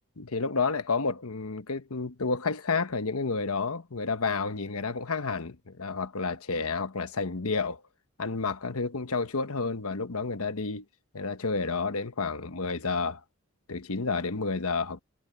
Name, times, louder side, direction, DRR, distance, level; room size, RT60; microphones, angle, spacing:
voice 1, 0.2-7.8 8.2-10.8 11.1-13.2 13.7-15.0, left 4 dB, 80° left, 1.1 m, -30 dB
head